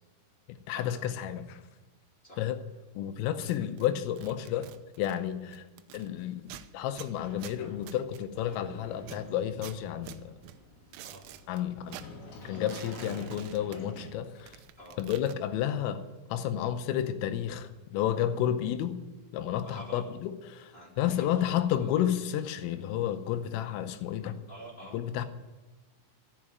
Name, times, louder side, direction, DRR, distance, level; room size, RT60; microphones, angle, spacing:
voice 1, 0.5-1.6 2.4-2.6 3.0-4.7 5.0-5.6 5.9-10.3 11.5-12.0 12.4-14.6 15.0-16.0 16.3-19.0 19.3-24.4 24.9-25.3, left 10 dB, 85° left, 9 dB, 3.3 m, -31 dB
sound 1, 3.3-6.1 6.4-8.6 9.0-11.6 11.9-14.1 14.4-15.3, right 11 dB, 80° right, 3.1 m, -48 dB
Sliding door, 7.2-14.6, left 2 dB, 50° left, 4.4 m, -48 dB
voice 2, 11.0-11.3 14.8-15.0 19.6-20.1 20.7-21.9 23.8-24.0 24.5-25.0, right 1 dB, 30° left, -5 dB, 1.0 m, -48 dB
12.5 x 7.2 x 9.1 m, 1.2 s
omnidirectional pair, 6.0 m